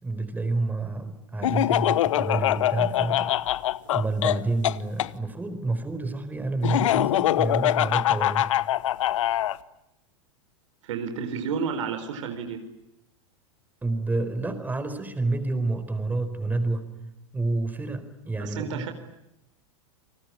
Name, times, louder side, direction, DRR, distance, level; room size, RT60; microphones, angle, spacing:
voice 1, 0.0-3.3 3.9-8.5 13.8-16.9 17.3-18.9, right 3 dB, 10° right, 10 dB, 4.5 m, -29 dB
Laughter, 1.4-5.1 6.6-9.6, left 13 dB, 80° left, 1.0 m, -23 dB
voice 2, 10.8-12.6 18.4-18.9, right 6 dB, 75° right, 6 dB, 4.4 m, -31 dB
29.5 x 19.5 x 9.9 m, 0.86 s
hypercardioid pair, 120°, 16 cm